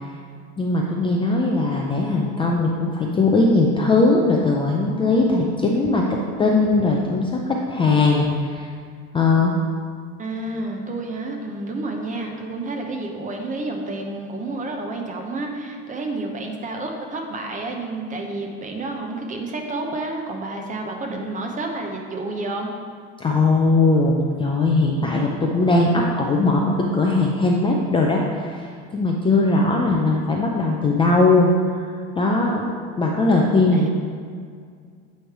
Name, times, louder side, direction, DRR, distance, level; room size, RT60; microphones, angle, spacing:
voice 1, 0.6-6.1 6.4-8.7 9.1-9.6 23.2-32.7 33.0-33.9, left 3 dB, 15° left, -1 dB, 0.4 m, -19 dB
voice 2, 10.2-22.7 33.7-33.9, right 2 dB, 25° right, 2 dB, 0.8 m, -30 dB
8.8 x 3.3 x 4.7 m, 2.1 s
cardioid pair, 135°, 33 cm